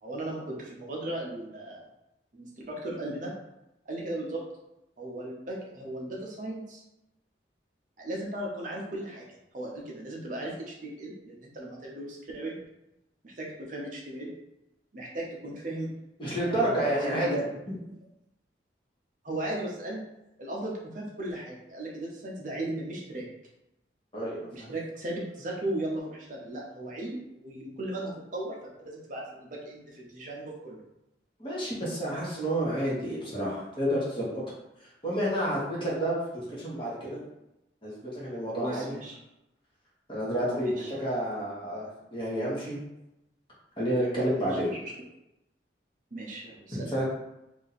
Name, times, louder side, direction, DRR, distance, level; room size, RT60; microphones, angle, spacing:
voice 1, 0.0-1.8 2.3-3.3 3.9-4.4 5.0-6.8 8.0-12.6 13.2-14.3 14.9-15.9 16.4-17.4 19.2-20.0 20.4-23.3 24.5-30.8 38.5-39.2 40.6-40.9 44.3-44.9 46.1-46.9, right 1 dB, 45° right, -2 dB, 0.6 m, -36 dB
voice 2, 16.2-17.3 24.1-24.7 31.4-34.3 35.0-37.2 37.8-38.9 40.1-42.8 43.8-44.7 46.7-47.0, right 1 dB, 25° left, -6 dB, 1.0 m, -30 dB
2.7 x 2.5 x 4.0 m, 0.90 s
head